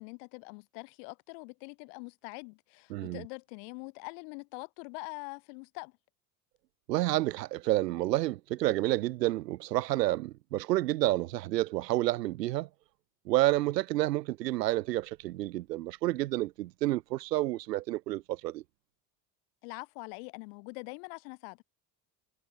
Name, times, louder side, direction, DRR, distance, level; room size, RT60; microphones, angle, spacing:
voice 1, 0.0-6.0 19.6-21.6, left 38 dB, 75° left, 2.3 m, -44 dB
voice 2, 2.9-3.2 6.9-12.7 13.3-18.6, right 16 dB, 90° right, 1.6 m, -29 dB
hypercardioid pair, 70°, 47 cm